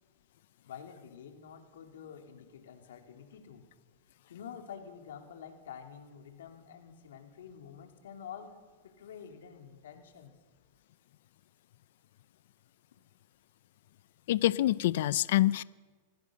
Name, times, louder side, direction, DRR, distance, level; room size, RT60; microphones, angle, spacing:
voice 1, 0.6-3.6 4.3-8.5 8.8-10.3, left 7 dB, 80° left, 4 dB, 3.4 m, -48 dB
voice 2, 14.3-15.6, left 14 dB, 65° left, 19 dB, 0.6 m, -26 dB
26.5 x 16.0 x 6.6 m, 1.4 s
hypercardioid pair, 135°, 0 cm